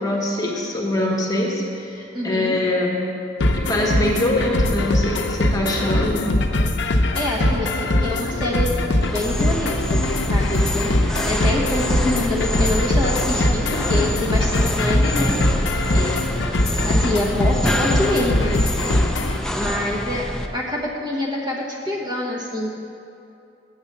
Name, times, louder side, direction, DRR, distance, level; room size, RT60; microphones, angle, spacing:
voice 1, 0.0-3.0 3.5-6.3, left 1 dB, 20° left, -2 dB, 1.3 m, -23 dB
voice 2, 2.1-2.5 7.1-8.7 9.0-10.0 10.3-15.4 15.9-16.5 16.8-18.6 19.5-20.3 20.5-22.8, left 1 dB, 25° right, -3 dB, 1.1 m, -26 dB
sound 1, 3.4-19.4, left 1 dB, 70° left, 0.6 m, -21 dB
sound 2, 9.0-20.5, equal, 5° left, 0.5 m, -26 dB
7.1 x 6.7 x 7.3 m, 2.7 s
head